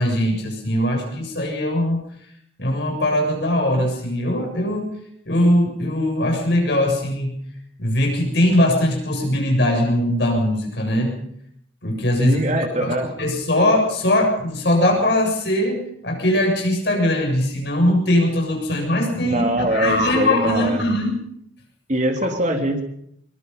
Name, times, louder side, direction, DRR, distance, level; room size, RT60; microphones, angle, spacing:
voice 1, 0.0-2.0 2.6-5.0 5.3-7.4 7.8-11.2 11.8-12.4 12.8-21.2, left 1 dB, 60° left, 2 dB, 7.4 m, -20 dB
voice 2, 12.2-13.1 19.2-20.8 21.9-22.8, right 1 dB, 40° right, 3 dB, 3.5 m, -22 dB
22.0 x 22.0 x 5.7 m, 0.70 s
head